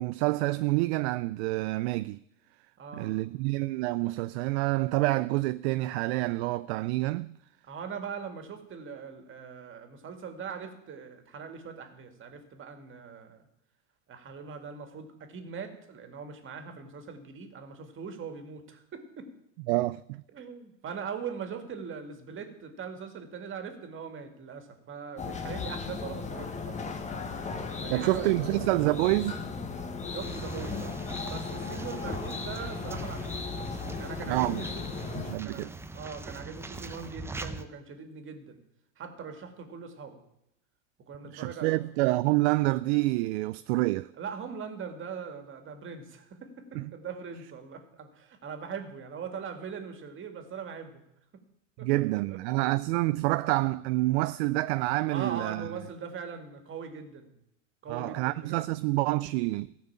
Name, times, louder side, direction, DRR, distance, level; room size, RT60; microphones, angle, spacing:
voice 1, 0.0-2.2 2.9-7.4 19.7-20.2 27.9-29.3 34.3-34.6 35.2-35.7 41.3-44.1 46.7-46.9 51.8-55.7 57.9-59.7, right 20 dB, 60° right, 0.5 m, -27 dB
voice 2, 2.8-3.1 7.6-13.4 14.1-19.3 20.3-26.8 27.8-28.6 30.1-31.0 31.2-33.5 34.0-35.1 35.4-38.6 39.0-40.2 41.1-41.8 44.2-51.0 51.3-51.4 51.8-52.4 55.1-57.4 57.8-58.6, right 6 dB, 30° right, 2.2 m, -41 dB
sound 1, 25.2-35.4, left 4 dB, 20° left, 1.3 m, -36 dB
sound 2, 30.2-37.7, right 3 dB, 5° right, 0.6 m, -42 dB
14.5 x 6.0 x 8.6 m
hypercardioid pair, 110°, 39 cm